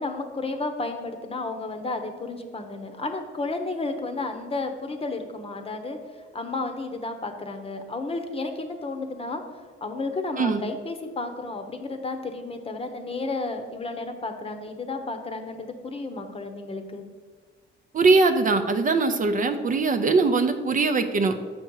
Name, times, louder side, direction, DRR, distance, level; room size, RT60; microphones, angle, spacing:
voice 1, 0.0-6.0 6.3-9.4 9.8-17.0, left 3 dB, 30° left, 6 dB, 0.8 m, -32 dB
voice 2, 17.9-21.3, right 3 dB, 40° right, 7 dB, 0.6 m, -21 dB
6.7 x 5.2 x 4.7 m, 1.5 s
cardioid pair, 90°, 20 cm